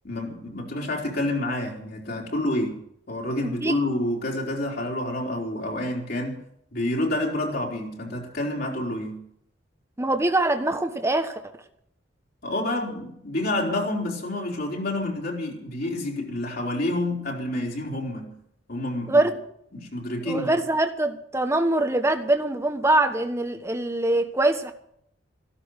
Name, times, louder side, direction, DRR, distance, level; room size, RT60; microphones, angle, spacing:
voice 1, 0.0-2.8 3.1-6.4 6.7-9.2 12.4-18.4 18.7-19.3 19.7-20.5, left 1 dB, 60° left, 4.2 m, -28 dB
voice 2, 3.4-3.8 10.0-11.4 19.1-19.4 20.3-24.7, right 2 dB, 15° right, 1.2 m, -23 dB
14.5 x 13.0 x 6.6 m
head